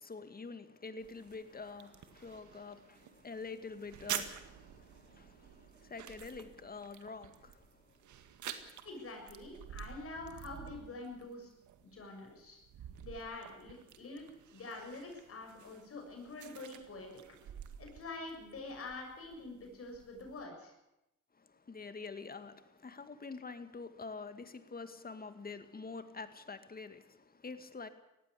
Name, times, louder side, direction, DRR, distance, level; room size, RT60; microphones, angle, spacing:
voice 1, 0.0-8.1 21.3-27.9, left 4 dB, 30° left, 2.2 m, -47 dB
sound 1, 1.0-20.4, right 9 dB, 75° right, 2.1 m, -49 dB
voice 2, 8.8-11.5 11.8-12.6 13.0-14.2 14.5-17.1 17.8-20.7, left 2 dB, 50° left, 7.1 m, -46 dB
19.0 x 15.5 x 9.8 m
cardioid pair, 90°, 30 cm